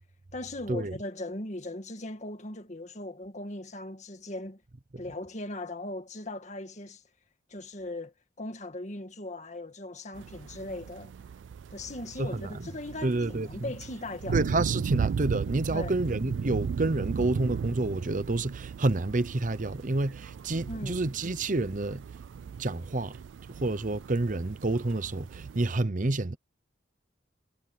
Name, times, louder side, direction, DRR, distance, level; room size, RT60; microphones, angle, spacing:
voice 1, 0.3-4.6 5.0-7.0 7.5-11.1 11.7-14.4 15.7-15.9 20.6-21.0, left 2 dB, 40° left, 1.9 m, -39 dB
sound 1, 10.1-25.8, right 6 dB, 90° right, 0.3 m, -36 dB
voice 2, 12.2-12.7 13.0-13.7 14.3-22.0 22.6-23.2 23.5-26.4, right 2 dB, 45° right, 0.8 m, -29 dB
head